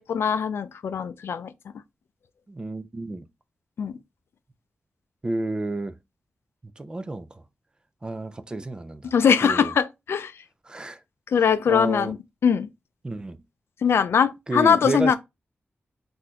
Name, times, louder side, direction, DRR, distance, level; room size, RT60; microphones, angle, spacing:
voice 1, 0.0-1.5 3.8-4.0 9.1-10.3 11.3-12.2 12.4-12.7 13.8-15.2, left 7 dB, 80° left, 0.4 m, -21 dB
voice 2, 2.5-3.2 5.2-5.9 6.8-7.3 8.0-9.1 9.4-9.7 10.7-11.0 11.7-12.1 13.0-13.4 14.5-15.2, right 2 dB, 20° right, 0.3 m, -30 dB
4.0 x 2.6 x 2.8 m
wide cardioid pair, 165°, 4 cm